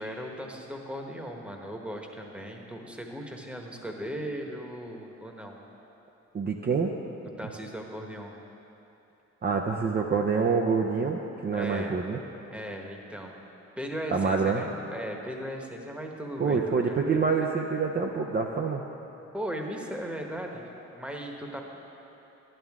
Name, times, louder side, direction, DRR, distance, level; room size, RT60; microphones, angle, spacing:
voice 1, 0.0-5.6 7.4-8.3 11.5-11.9 12.5-13.4 13.8-16.6 16.9-17.2 19.3-20.6 20.9-21.6, equal, 5° right, 1 dB, 1.2 m, -37 dB
voice 2, 6.3-6.9 7.4-7.5 9.4-12.2 14.1-14.6 16.4-18.8, right 5 dB, 35° right, 1 dB, 0.6 m, -26 dB
11.0 x 11.0 x 3.6 m, 3.0 s
cardioid pair, 90°, 30 cm